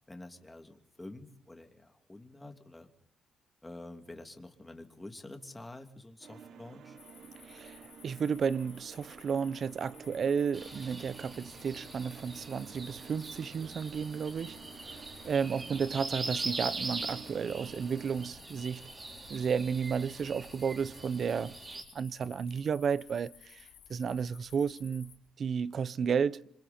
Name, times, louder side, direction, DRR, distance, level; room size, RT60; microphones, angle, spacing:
voice 1, 0.0-2.9 3.6-7.0 15.4-15.7, left 2 dB, 15° left, 2.7 m, -48 dB
sound 1, 6.2-18.3, right 7 dB, 70° right, 1.4 m, -53 dB
sound 2, 7.0-25.1, left 9 dB, 90° left, 3.0 m, -57 dB
voice 2, 7.4-18.9 19.3-21.6 21.9-26.5, right 6 dB, 50° right, 0.8 m, -33 dB
sound 3, 10.5-21.8, right 3 dB, 30° right, 4.2 m, -42 dB
27.5 x 26.0 x 4.4 m
cardioid pair, 90°, 0 cm